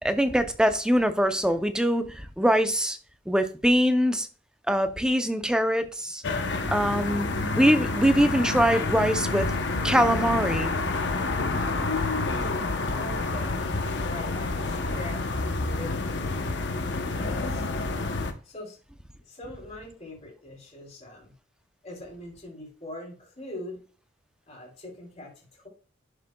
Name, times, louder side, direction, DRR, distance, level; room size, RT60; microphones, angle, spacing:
voice 1, 0.0-3.0 3.3-4.3 4.7-6.2 6.7-7.3 7.5-9.5 9.8-10.7, equal, 5° right, 0.6 m, -23 dB
sound 1, 6.2-18.3, left 3 dB, 60° left, 0.9 m, -28 dB
voice 2, 11.7-16.2 17.1-17.7 18.4-18.8 19.2-21.3 21.8-23.8 24.5-25.7, left 2 dB, 35° left, 3.6 m, -40 dB
11.0 x 6.5 x 2.3 m
head